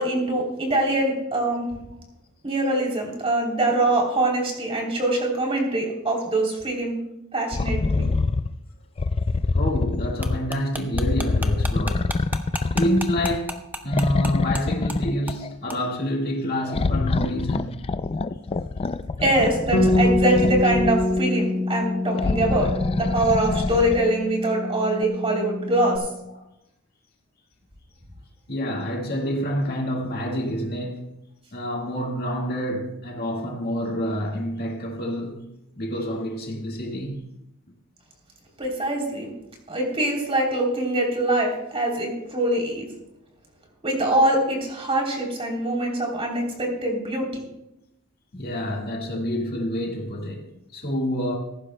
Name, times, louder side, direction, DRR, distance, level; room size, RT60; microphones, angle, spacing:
voice 1, 0.0-1.7 2.4-7.0 7.3-8.1 19.2-26.0 38.6-39.3 39.7-42.8 43.8-47.4, right 1 dB, 25° right, 3.3 m, -23 dB
sound 1, 7.5-8.5 9.0-10.5 10.9-13.5 13.9-15.5 16.7-21.2 22.1-24.1 25.0-25.1, left 3 dB, 25° left, 0.3 m, -25 dB
voice 2, 9.3-12.1 12.7-13.6 13.8-17.8 26.3-26.4 28.5-31.1 31.5-37.2 48.3-50.5 50.7-51.4, equal, 45° left, 1.8 m, -28 dB
sound 2, 10.2-14.6 14.9-15.0 15.3-15.4 15.7-15.8, right 2 dB, 10° right, 0.8 m, -32 dB
Bass guitar, 19.7-26.0, left 2 dB, 75° left, 4.4 m, -25 dB
17.5 x 15.0 x 2.2 m
head